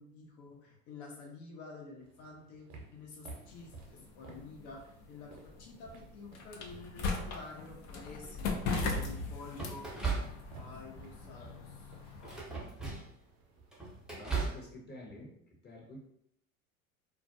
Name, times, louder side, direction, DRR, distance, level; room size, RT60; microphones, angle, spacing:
voice 1, 0.0-9.9 10.6-12.0, left 3 dB, 60° left, -1 dB, 1.0 m, -50 dB
sound 1, 2.0-6.6 7.8-7.9 8.3-14.0, equal, 60° right, 0.8 m, -47 dB
sound 2, 3.3-12.4, left 4 dB, 40° left, 0.5 m, -40 dB
sound 3, 8.2-8.7 9.5-10.8 11.2-11.5 12.1-13.2 13.6-14.7, right 4 dB, ahead, 0.6 m, -37 dB
voice 2, 14.1-15.4 15.6-16.0, left 1 dB, 25° left, -1 dB, 0.9 m, -48 dB
2.4 x 2.1 x 2.6 m, 0.74 s
hypercardioid pair, 80°, 42 cm